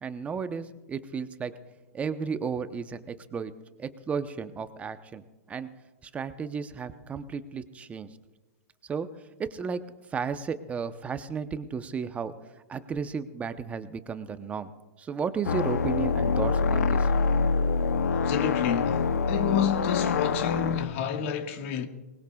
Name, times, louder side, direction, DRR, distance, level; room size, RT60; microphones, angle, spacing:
voice 1, 0.0-1.5 1.9-3.5 3.8-5.2 5.5-5.7 6.1-8.1 8.9-9.1 9.4-9.8 10.1-12.3 12.7-14.7 15.0-17.1, right 6 dB, 15° right, 0.8 m, -33 dB
sound 1, 15.4-20.8, left 4 dB, 85° left, 0.7 m, -25 dB
voice 2, 18.2-21.9, left 8 dB, 55° left, 1.6 m, -29 dB
23.5 x 20.0 x 2.4 m
hypercardioid pair, 130°, 8 cm